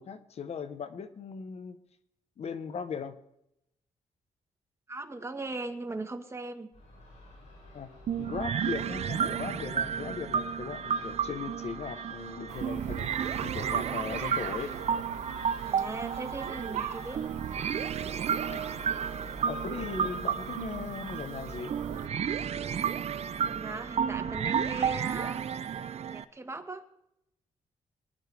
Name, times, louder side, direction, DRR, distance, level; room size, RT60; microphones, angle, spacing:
voice 1, 0.0-1.8 2.4-3.2 7.7-7.9 8.2-13.1 13.4-14.7 18.5-18.7 19.5-21.7, left 6 dB, 55° left, 11 dB, 1.0 m, -38 dB
voice 2, 4.9-6.7 15.6-17.2 23.4-25.5 26.1-26.8, right 2 dB, 20° right, 6 dB, 1.4 m, -39 dB
Crow / Gull seagull, 6.7-25.4, left 1 dB, 70° left, 6.9 m, -50 dB
sound 1, 8.1-26.2, right 7 dB, 55° right, 0.6 m, -32 dB
sound 2, 12.5-22.1, right 8 dB, 85° right, 1.4 m, -40 dB
23.0 x 11.0 x 3.4 m, 0.82 s
cardioid pair, 95°, 13 cm